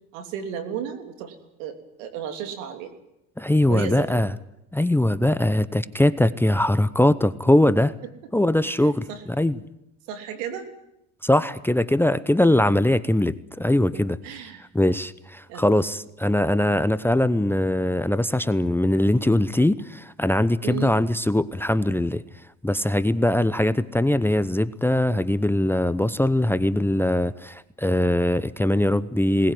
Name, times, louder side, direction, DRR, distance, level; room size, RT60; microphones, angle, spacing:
voice 1, 0.1-2.9 3.7-4.2 9.1-9.2 10.1-10.7 13.9-14.6 15.5-15.7 20.6-20.9, right 8 dB, 80° right, 6 dB, 3.2 m, -34 dB
voice 2, 3.4-4.3 4.7-7.9 8.3-9.6 11.2-14.2 14.7-22.2 22.6-29.5, left 1 dB, 5° left, 16 dB, 0.8 m, -21 dB
21.0 x 19.0 x 9.4 m, 0.85 s
hypercardioid pair, 75°, 38 cm